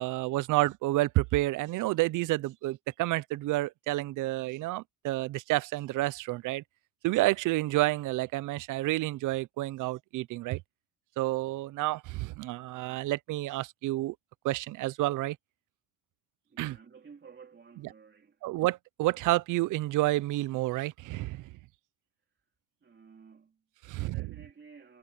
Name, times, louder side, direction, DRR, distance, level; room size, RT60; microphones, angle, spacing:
voice 1, 0.0-6.6 7.0-10.6 11.2-14.1 14.4-15.4 16.6-16.8 18.4-21.5 23.9-24.3, right 18 dB, 85° right, 0.6 m, -29 dB
voice 2, 16.5-18.4 22.8-25.0, right 5 dB, 35° right, 2.8 m, -54 dB
cardioid pair, 90°, 30 cm